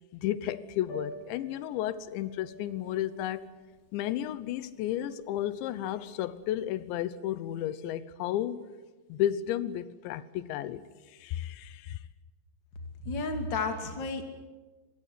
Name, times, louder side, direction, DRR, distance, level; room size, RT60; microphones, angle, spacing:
voice 1, 0.1-3.5 3.9-8.6 9.1-10.8 11.1-12.0, left 12 dB, 90° left, 3.2 m, -33 dB
Piano, 0.8-6.8, right 2 dB, 55° left, 6.1 m, -50 dB
voice 2, 13.0-14.2, left 3 dB, 30° left, 2.5 m, -32 dB
24.0 x 22.0 x 8.4 m
omnidirectional pair, 5.1 m